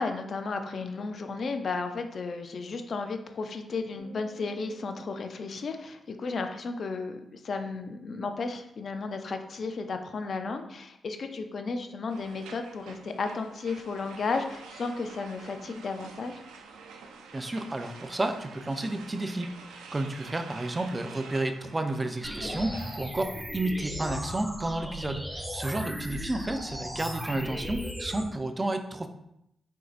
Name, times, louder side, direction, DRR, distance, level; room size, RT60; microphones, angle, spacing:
voice 1, 0.0-16.4, left 4 dB, 60° left, 6 dB, 0.5 m, -34 dB
sound 1, 4.0-6.5, equal, 35° left, 1.2 m, -54 dB
sound 2, 12.1-23.0, right 5 dB, 90° right, 0.4 m, -48 dB
voice 2, 17.3-29.1, right 2 dB, 25° right, 7 dB, 0.5 m, -31 dB
sound 3, 22.2-28.2, equal, ahead, 0.9 m, -36 dB
4.5 x 3.8 x 2.5 m, 0.80 s
supercardioid pair, 50°, 0 cm